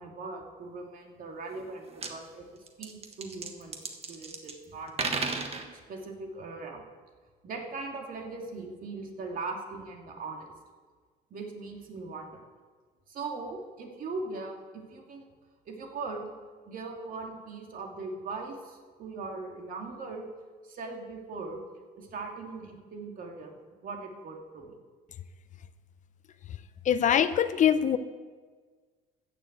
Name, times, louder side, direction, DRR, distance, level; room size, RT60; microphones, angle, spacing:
voice 1, 0.0-2.5 2.8-3.8 4.1-5.4 5.9-6.8 7.4-10.5 11.3-12.4 13.1-15.2 15.7-16.3 16.7-20.3 20.7-21.6 22.0-23.5 23.8-24.7, right 3 dB, 55° right, 2 dB, 2.3 m, -40 dB
sound 1, 1.6-1.7 1.9-2.1 2.7-4.6 4.9-5.7, right 4 dB, 35° right, 1.4 m, -34 dB
voice 2, 26.8-28.0, left 9 dB, 45° left, 13 dB, 0.6 m, -23 dB
14.0 x 6.9 x 8.1 m, 1.5 s
cardioid pair, 110°, 17 cm